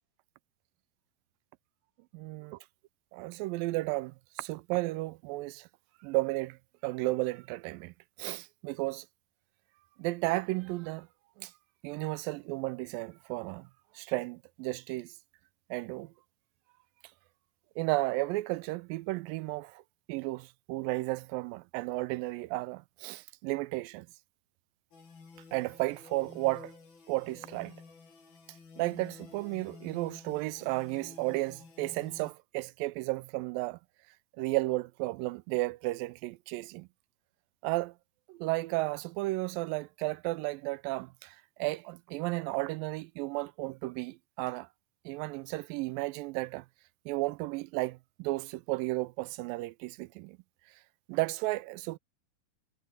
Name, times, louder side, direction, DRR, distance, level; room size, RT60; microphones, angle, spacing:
voice 1, 2.1-2.6 3.1-5.7 6.0-6.6 6.8-7.9 8.2-9.1 10.0-11.1 11.4-11.5 11.8-13.7 14.0-15.1 15.7-16.1 17.8-19.8 20.1-24.1 25.5-26.7 27.1-27.8 28.8-33.8 34.4-36.9 37.6-37.9 38.3-44.7 45.1-46.7 47.1-50.4 51.1-52.0, right 21 dB, 80° right, 2.1 m, -33 dB
sound 1, 24.9-32.3, left 4 dB, 85° left, 7.7 m, -52 dB
omnidirectional pair, 4.2 m